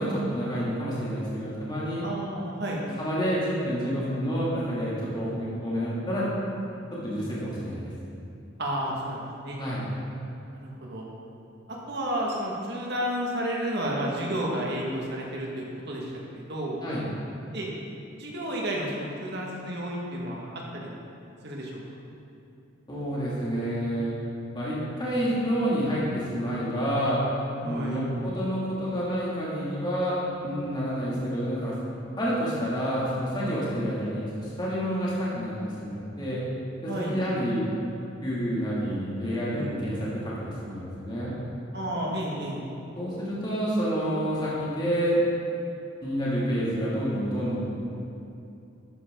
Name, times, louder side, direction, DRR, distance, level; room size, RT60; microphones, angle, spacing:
voice 1, 0.0-2.0 3.0-6.2 7.0-7.9 9.6-9.9 16.8-17.0 22.9-24.1 24.5-27.2 27.6-31.7 32.2-36.4 36.8-37.6 38.2-41.3 42.9-45.2 46.0-47.6, equal, 25° left, -8 dB, 2.9 m, -28 dB
voice 2, 2.0-2.8 7.2-7.3 8.6-9.6 10.5-11.1 11.9-16.8 17.5-17.7 18.2-20.5 20.7-21.1 21.4-21.8 27.6-28.0 36.9-37.2 39.5-39.8 41.7-42.7, equal, 55° right, -3 dB, 2.1 m, -31 dB
13.0 x 9.2 x 4.0 m, 2.7 s
head